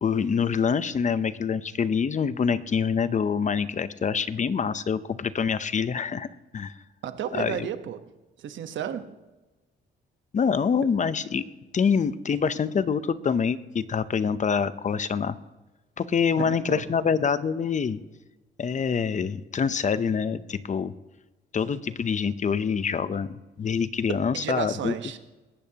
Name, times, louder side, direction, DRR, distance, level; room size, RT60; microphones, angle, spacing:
voice 1, 0.0-6.3 6.5-6.7 7.3-7.7 10.3-11.4 11.7-15.4 16.0-18.0 18.6-20.9 21.5-24.9, left 6 dB, 40° left, 14 dB, 0.7 m, -26 dB
voice 2, 7.0-8.0 8.4-9.1 16.4-16.8 24.3-25.2, right 9 dB, 70° right, 9 dB, 1.2 m, -32 dB
19.0 x 15.5 x 2.9 m, 1.1 s
cardioid pair, 90°, 20 cm